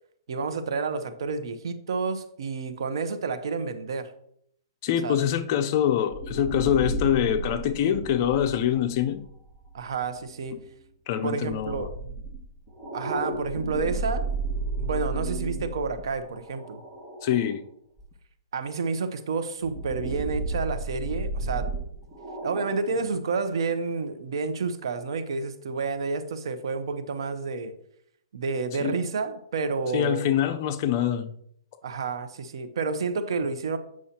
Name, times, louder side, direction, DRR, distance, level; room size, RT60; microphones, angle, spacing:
voice 1, 0.3-4.1 5.0-5.3 9.7-10.6 11.2-11.9 12.9-14.3 14.8-16.8 18.5-21.7 22.4-27.7 28.3-30.3 31.8-33.8, right 4 dB, 70° right, 0.8 m, -30 dB
voice 2, 4.8-9.2 11.1-11.9 17.2-17.6 28.8-29.0 29.9-31.3, left 10 dB, 40° left, 0.6 m, -25 dB
sound 1, 6.1-10.3 11.5-17.5 18.0-18.1 19.6-23.1, right 2 dB, 25° right, 2.0 m, -33 dB
8.3 x 6.2 x 2.9 m
hypercardioid pair, 155°, 3 cm